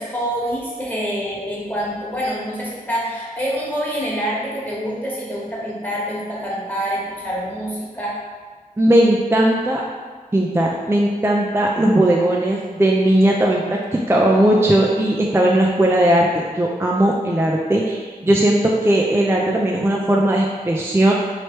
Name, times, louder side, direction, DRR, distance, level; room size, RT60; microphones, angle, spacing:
voice 1, 0.0-8.2, equal, 10° left, -6 dB, 1.3 m, -26 dB
voice 2, 8.8-9.8 10.3-21.1, right 1 dB, 15° right, -2 dB, 0.4 m, -17 dB
3.2 x 3.0 x 4.4 m, 1.5 s
wide cardioid pair, 45°, 15 cm